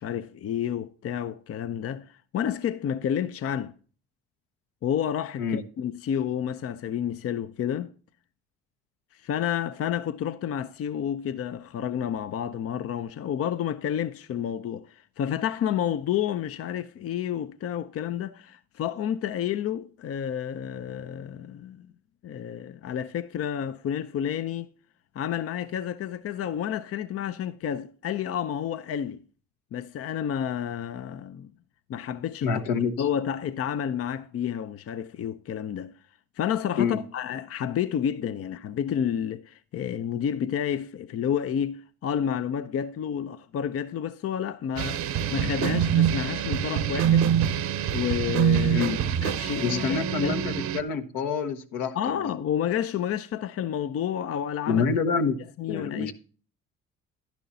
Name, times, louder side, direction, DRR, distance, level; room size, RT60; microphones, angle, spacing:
voice 1, 0.0-3.7 4.8-7.9 9.1-21.9 22.2-24.7 25.1-29.2 29.7-31.5 31.9-32.6 33.0-35.9 36.4-47.3 47.9-50.4 51.9-54.8 55.6-56.1, left 9 dB, 45° left, 0.6 m, -30 dB
voice 2, 32.4-32.9 36.8-37.0 48.7-49.0 49.6-52.0 54.7-55.4 55.7-56.1, left 5 dB, 75° left, 1.2 m, -27 dB
sound 1, 44.8-50.8, right 9 dB, 60° right, 0.9 m, -25 dB
11.5 x 10.5 x 2.7 m
hypercardioid pair, 65°, 32 cm